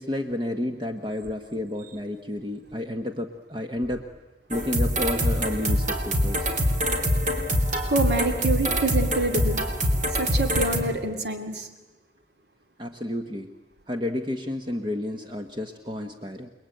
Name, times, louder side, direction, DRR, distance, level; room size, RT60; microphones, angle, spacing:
voice 1, 0.0-4.1 4.5-6.5 12.8-13.5 13.9-16.5, left 1 dB, 25° right, 5 dB, 1.2 m, -31 dB
sound 1, 4.5-10.8, equal, 45° right, 3.3 m, -24 dB
voice 2, 7.9-9.7 10.2-11.7, right 2 dB, 75° right, 7 dB, 2.4 m, -26 dB
29.5 x 21.5 x 9.2 m, 1.2 s
head